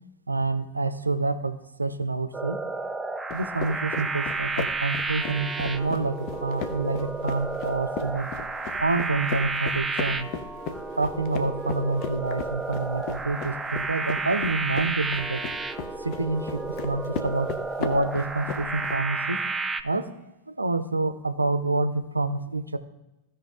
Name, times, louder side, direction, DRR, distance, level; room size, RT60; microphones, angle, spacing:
voice 1, 0.3-2.6 3.3-8.3 8.8-10.3 10.9-15.4 16.0-17.5 17.8-19.4 19.8-20.1 20.6-22.8, right 3 dB, 80° right, 11 dB, 0.5 m, -27 dB
sound 1, 2.3-19.8, right 3 dB, 10° right, 0.4 m, -32 dB
sound 2, 3.3-19.0, left 6 dB, 40° left, 0.8 m, -37 dB
15.5 x 5.1 x 3.6 m, 0.97 s
figure-of-eight pair, 90°, 0 cm